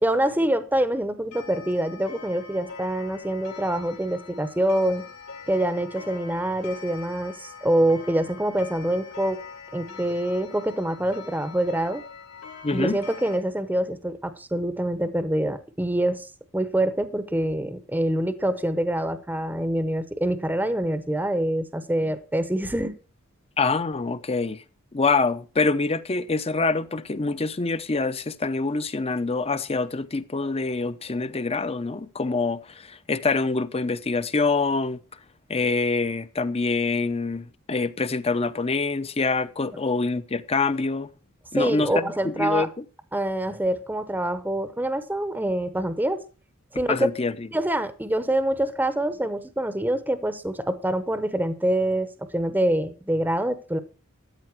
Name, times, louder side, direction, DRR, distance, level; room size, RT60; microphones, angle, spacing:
voice 1, 0.0-5.0 5.5-9.4 9.7-12.0 12.7-16.3 16.5-23.0 41.5-42.7 43.1-46.2 46.7-47.1 47.5-52.1 52.3-53.8, right 1 dB, 10° right, 0.8 m, -25 dB
Clock, 1.3-13.4, left 6 dB, 85° left, 4.0 m, -43 dB
voice 2, 12.6-13.0 23.6-24.6 24.9-35.0 35.5-41.1 41.5-42.7 46.9-47.5, left 3 dB, 30° left, 0.7 m, -25 dB
13.5 x 8.9 x 4.6 m
head